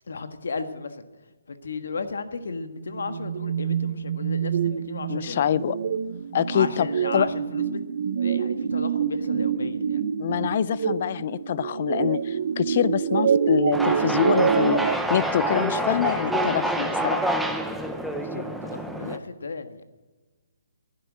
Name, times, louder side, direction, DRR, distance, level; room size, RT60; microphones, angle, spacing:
voice 1, 0.1-1.0 1.5-5.5 6.5-7.8 8.2-10.0 18.2-19.8, left 4 dB, 75° left, 1.5 m, -35 dB
sound 1, 2.7-15.0, right 7 dB, 50° right, 0.6 m, -26 dB
voice 2, 5.1-5.8 6.3-6.9 7.1-7.3 10.2-17.3, left 9 dB, 40° left, 0.5 m, -25 dB
sound 2, 13.7-19.2, right 1 dB, ahead, 0.7 m, -27 dB
11.5 x 10.0 x 9.1 m
hypercardioid pair, 165°, 0 cm